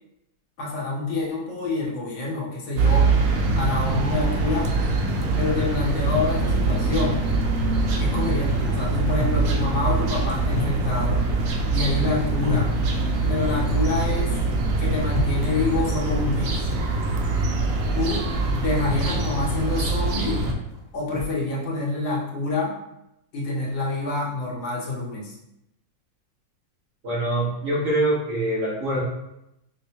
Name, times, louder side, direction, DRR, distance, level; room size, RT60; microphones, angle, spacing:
voice 1, 0.6-3.1 3.6-4.8 5.3-7.2 8.0-11.3 11.7-12.7 13.3-14.3 14.8-16.7 17.9-20.4 20.9-22.7 23.3-25.4, left 3 dB, 80° left, -4 dB, 1.6 m, -27 dB
sound 1, 2.8-20.5, right 3 dB, 80° right, 0.7 m, -23 dB
sound 2, 6.3-17.4 17.7-21.2, left 2 dB, 65° left, 1.4 m, -35 dB
voice 2, 27.0-29.0, right 1 dB, 45° right, -7 dB, 1.3 m, -24 dB
5.2 x 2.1 x 2.8 m, 0.85 s
omnidirectional pair, 2.0 m